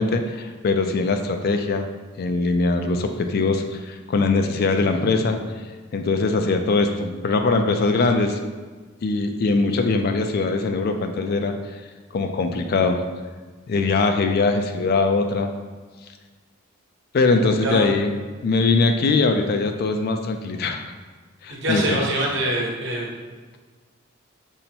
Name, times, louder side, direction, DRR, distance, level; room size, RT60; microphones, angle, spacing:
voice 1, 0.0-1.9 2.2-5.4 5.9-8.4 9.0-11.6 12.1-13.0 13.7-15.5 17.1-18.1 18.4-20.8 21.4-22.0, left 3 dB, 45° left, 6 dB, 0.3 m, -21 dB
voice 2, 21.5-23.1, right 1 dB, 55° right, -2 dB, 1.0 m, -24 dB
5.3 x 2.1 x 4.3 m, 1.4 s
head